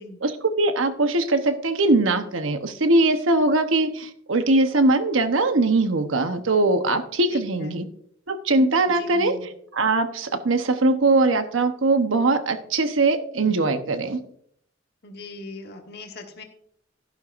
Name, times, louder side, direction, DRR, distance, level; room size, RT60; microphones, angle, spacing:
voice 1, 0.2-7.8 8.3-9.3 9.7-14.2, right 2 dB, 80° right, 9 dB, 1.0 m, -21 dB
voice 2, 7.3-7.8 8.9-9.5 15.0-16.4, left 2 dB, 55° left, 3 dB, 1.3 m, -40 dB
11.5 x 11.0 x 2.5 m, 0.66 s
head